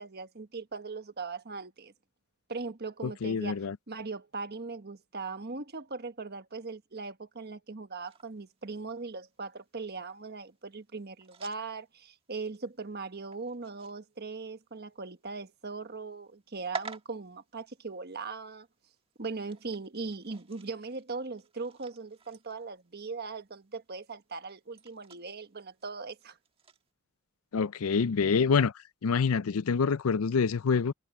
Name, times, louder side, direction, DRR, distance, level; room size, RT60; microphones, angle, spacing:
voice 1, 0.0-1.9 2.5-3.6 3.9-18.7 19.2-26.4, right 4 dB, 50° right, 1.3 m, -39 dB
voice 2, 3.0-3.8 27.5-28.7 29.0-30.9, left 5 dB, 90° left, 0.5 m, -26 dB
sound 1, 8.1-26.9, right 4 dB, 25° right, 1.4 m, -51 dB
head